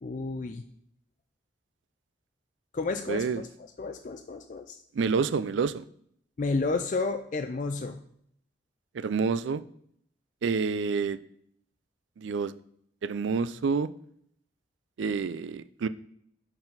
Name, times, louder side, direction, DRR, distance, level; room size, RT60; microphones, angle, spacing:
voice 1, 0.0-0.6 2.7-3.5 3.8-4.8 6.4-8.0, left 3 dB, 40° left, 6 dB, 0.4 m, -31 dB
voice 2, 3.1-3.4 4.9-5.8 8.9-9.6 10.4-11.2 12.2-12.5 13.0-13.9 15.0-15.9, right 5 dB, 75° right, 15 dB, 0.4 m, -28 dB
8.7 x 4.1 x 4.0 m, 0.68 s
head